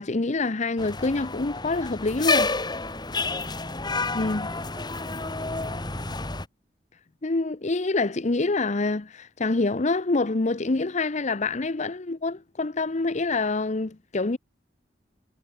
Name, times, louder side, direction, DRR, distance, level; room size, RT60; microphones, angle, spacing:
voice 1, 0.0-2.5 4.1-4.5 7.2-14.4, left 3 dB, 40° left, 0.8 m, -26 dB
sound 1, 0.8-6.4, left 3 dB, 25° left, 2.4 m, -29 dB
voice 2, 3.5-3.9 4.5-6.3, right 1 dB, 25° right, 5.3 m, -50 dB
head